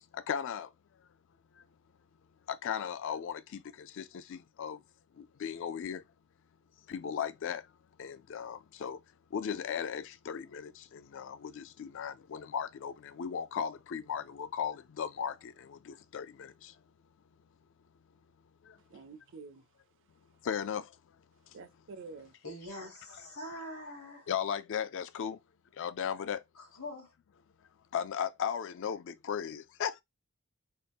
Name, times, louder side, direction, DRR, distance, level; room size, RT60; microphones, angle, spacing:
voice 1, 0.1-0.7 1.6-1.7 2.5-4.8 5.2-6.0 6.9-7.7 8.0-9.0 9.3-16.7 18.6-18.8 20.4-21.0 24.3-25.4 25.7-26.4 27.9-30.0, left 8 dB, 60° left, 0.4 m, -37 dB
voice 2, 18.9-19.6 21.5-22.3, right 4 dB, 60° right, 0.5 m, -48 dB
voice 3, 22.4-24.3 26.6-27.1, left 1 dB, 85° left, 2.3 m, -44 dB
4.1 x 2.4 x 3.4 m
head